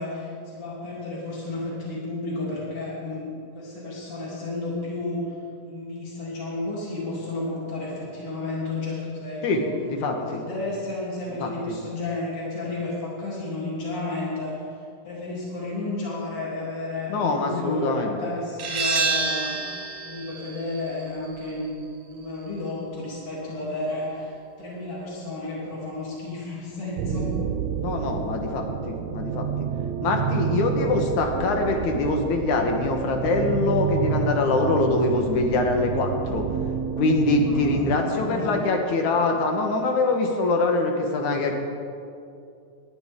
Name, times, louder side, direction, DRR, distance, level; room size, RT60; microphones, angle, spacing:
voice 1, 0.0-5.3 5.6-9.7 10.1-14.6 15.0-19.6 20.0-24.3 24.6-27.3 37.5-38.6, left 2 dB, 50° left, -6 dB, 3.9 m, -32 dB
voice 2, 9.4-10.4 11.4-11.8 17.1-18.1 27.8-29.5 30.0-36.5 37.0-41.6, left 3 dB, 80° left, 3 dB, 2.7 m, -24 dB
sound 1, 18.6-24.0, right 4 dB, 50° right, 2.0 m, -30 dB
sound 2, 27.0-38.9, right 8 dB, 85° right, 2.0 m, -29 dB
18.5 x 12.0 x 3.7 m, 2.5 s
omnidirectional pair, 3.4 m